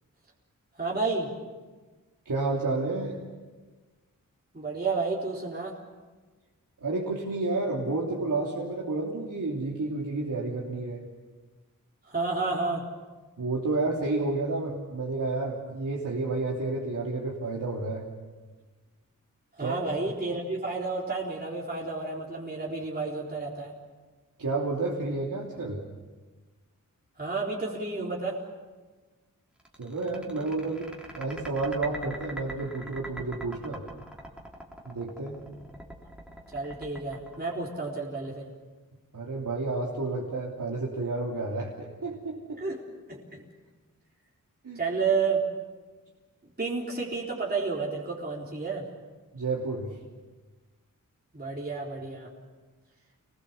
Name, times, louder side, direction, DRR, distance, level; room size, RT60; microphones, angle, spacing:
voice 1, 0.8-1.3 4.5-5.7 12.0-12.9 19.6-23.7 27.2-28.4 36.5-38.5 42.6-42.8 43.1-43.4 44.8-45.4 46.6-48.9 51.3-52.3, right 4 dB, 30° right, -4 dB, 4.0 m, -31 dB
voice 2, 2.2-3.2 6.8-11.1 13.4-18.1 19.6-19.8 24.4-25.8 29.8-33.8 34.8-35.4 39.1-42.6 44.6-44.8 49.3-49.9, right 3 dB, 75° right, -3 dB, 3.1 m, -30 dB
sound 1, 29.6-38.3, right 1 dB, 5° right, 3.5 m, -42 dB
28.0 x 20.5 x 7.1 m, 1.3 s
wide cardioid pair, 90°, 33 cm